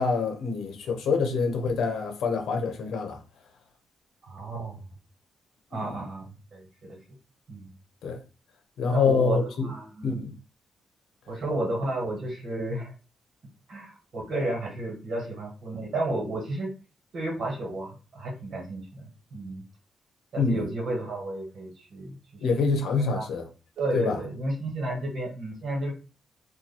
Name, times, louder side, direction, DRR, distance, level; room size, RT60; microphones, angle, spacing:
voice 1, 0.0-3.2 5.7-5.9 8.0-8.2 8.8-9.7 10.0-10.3 20.4-20.7 22.4-23.5 23.9-24.2, left 4 dB, 75° left, 0.9 m, -26 dB
voice 2, 4.2-4.8 5.7-7.0 7.5-7.7 8.9-10.3 11.3-12.9 13.7-16.7 17.1-19.6 20.3-22.2 23.0-23.3 23.8-25.9, right 2 dB, 50° right, 1.6 m, -32 dB
2.9 x 2.6 x 4.1 m
wide cardioid pair, 160°, 0 cm